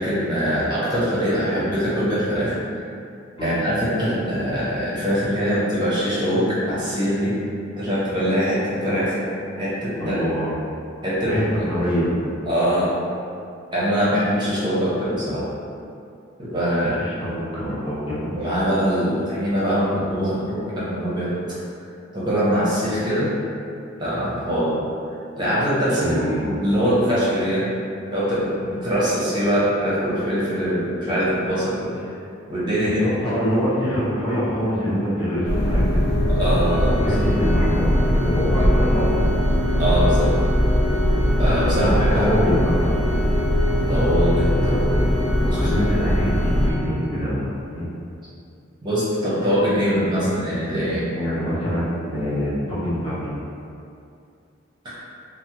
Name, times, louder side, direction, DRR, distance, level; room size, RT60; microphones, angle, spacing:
voice 1, 0.0-2.6 3.4-7.4 7.8-9.2 9.6-10.2 11.0-11.7 12.5-12.9 13.7-15.4 16.4-17.2 18.3-21.6 22.1-23.3 24.0-24.7 25.4-26.1 26.4-27.7 28.1-32.1 32.5-33.0 33.3-33.4 36.3-37.2 39.8-40.3 41.4-42.3 43.9-45.7 48.8-51.1 54.8-54.9, equal, 20° right, -9 dB, 0.6 m, -23 dB
voice 2, 10.0-10.5 11.2-11.4 11.7-12.1 17.0-18.5 26.0-26.4 33.0-36.2 37.0-39.1 41.8-43.0 45.5-47.9 51.2-53.3, equal, 25° left, -10 dB, 0.8 m, -25 dB
sound 1, 35.4-46.7, equal, 65° left, 0.5 m, -20 dB
Organ, 36.6-47.3, left 1 dB, 80° left, 0.9 m, -34 dB
3.4 x 2.1 x 2.9 m, 2.5 s
head